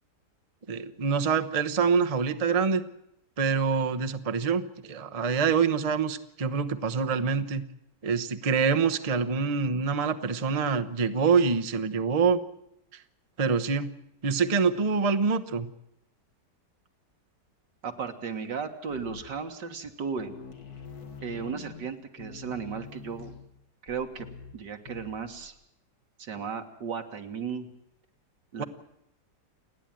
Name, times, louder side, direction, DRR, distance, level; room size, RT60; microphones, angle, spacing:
voice 1, 0.7-2.8 3.4-7.6 8.0-12.4 13.4-13.9 14.2-15.7 28.6-28.7, right 5 dB, 30° right, 8 dB, 0.8 m, -25 dB
voice 2, 17.8-20.3 21.2-23.4 23.8-24.3 24.5-25.6 26.2-27.7 28.5-28.7, right 6 dB, 75° right, 6 dB, 2.3 m, -35 dB
sound 1, 18.9-19.5 19.9-20.0 20.2-25.5, left 6 dB, 60° left, 1.9 m, -45 dB
29.5 x 10.0 x 9.0 m, 0.80 s
omnidirectional pair, 1.9 m